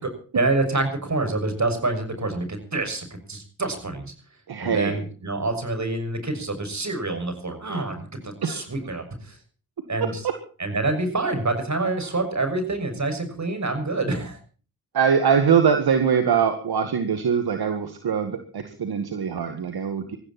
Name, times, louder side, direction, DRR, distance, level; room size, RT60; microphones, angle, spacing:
voice 1, 0.0-4.1 4.6-9.4 9.9-10.3 10.6-14.4, right 2 dB, 45° right, 7 dB, 6.6 m, -27 dB
voice 2, 4.5-5.0 8.4-8.6 14.9-20.2, right 7 dB, 70° right, 7 dB, 2.0 m, -22 dB
20.5 x 15.0 x 4.4 m, 0.40 s
supercardioid pair, 45°, 39 cm